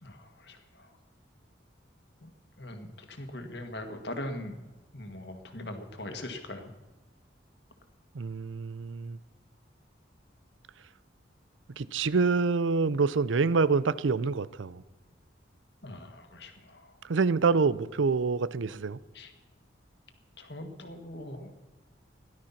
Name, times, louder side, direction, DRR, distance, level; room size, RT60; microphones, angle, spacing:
voice 1, 0.0-0.9 2.2-2.3 2.6-4.6 4.9-6.7 15.8-16.9 19.1-19.3 20.4-21.5, left 1 dB, 60° left, 1.9 m, -41 dB
voice 2, 8.1-9.2 11.8-14.8 17.1-19.0, right 4 dB, 90° right, 0.6 m, -26 dB
17.0 x 12.0 x 5.9 m
head